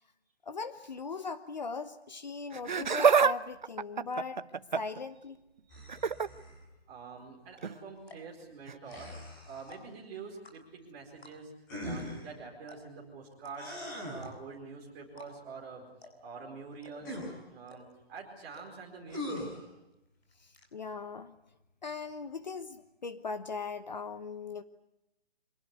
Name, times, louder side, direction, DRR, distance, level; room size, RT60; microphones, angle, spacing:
voice 1, 0.4-4.4 4.7-5.4 20.4-21.3 21.8-24.6, left 4 dB, 45° left, 12 dB, 1.2 m, -39 dB
Laughter, 2.5-3.3 3.6-5.0 5.9-6.3 7.6-7.8 8.7-8.8, right 6 dB, 45° right, 0.8 m, -26 dB
sound 1, 5.7-6.6 8.8-9.8 11.7-12.3 13.6-14.3 17.0-17.3 19.1-19.6, left 1 dB, 20° left, 6.4 m, -40 dB
voice 2, 5.7-6.1 6.9-9.1 9.4-11.5 11.8-13.8 14.1-15.8 16.2-17.2 17.5-19.5, right 5 dB, 10° right, -2 dB, 4.6 m, -46 dB
sound 2, 7.5-7.6 8.0-8.3 8.8-9.2 9.6-10.0 10.4-10.8 11.2-11.6 12.0-12.1 12.3-12.4 12.7-13.0 13.4-13.6 14.2-14.6 15.1-15.6 16.0-16.3 16.8-17.2 17.7-18.0 18.5-18.6 19.0-19.1 19.4-19.8 20.1-20.7, left 3 dB, 80° left, 7.3 m, -53 dB
26.0 x 19.0 x 9.7 m, 0.91 s
hypercardioid pair, 180°, 31 cm